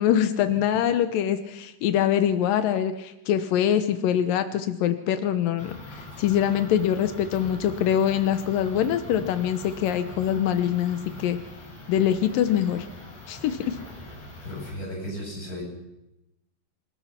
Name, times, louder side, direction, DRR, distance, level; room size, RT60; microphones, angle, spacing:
voice 1, 0.0-11.4 11.9-12.9 13.3-13.8, left 10 dB, 80° left, 10 dB, 2.0 m, -24 dB
sound 1, 5.6-14.7, left 2 dB, 35° left, 7.1 m, -42 dB
voice 2, 14.4-15.6, equal, 15° left, -3 dB, 8.2 m, -35 dB
27.0 x 20.5 x 6.0 m, 0.93 s
omnidirectional pair, 5.4 m